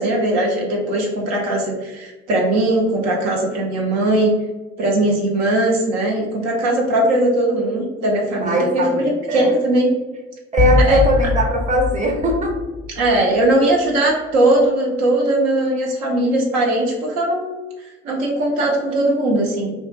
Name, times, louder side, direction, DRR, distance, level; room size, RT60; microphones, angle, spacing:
voice 1, 0.0-4.3 4.8-9.9 10.9-11.0 13.0-17.6 18.0-19.7, right 1 dB, 75° right, -2 dB, 0.6 m, -19 dB
voice 2, 8.4-9.5 10.5-12.5, equal, 20° right, 1 dB, 0.7 m, -19 dB
sound 1, 10.6-13.4, left 3 dB, 40° left, 0.4 m, -21 dB
2.4 x 2.2 x 2.5 m, 1.2 s
hypercardioid pair, 45°, 34 cm